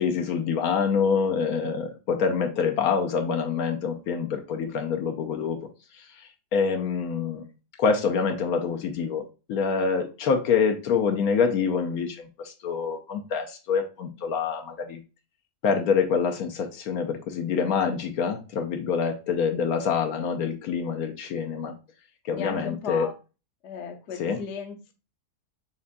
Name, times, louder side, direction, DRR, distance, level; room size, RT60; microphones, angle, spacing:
voice 1, 0.0-5.6 5.9-7.4 7.8-9.2 9.5-15.0 15.6-21.7 22.2-23.1 24.2-24.4, left 6 dB, 75° left, 5 dB, 1.0 m, -26 dB
voice 2, 22.3-23.1 23.6-24.9, left 6 dB, 55° left, 6 dB, 0.8 m, -36 dB
7.1 x 2.5 x 2.2 m, 0.32 s
omnidirectional pair, 1.7 m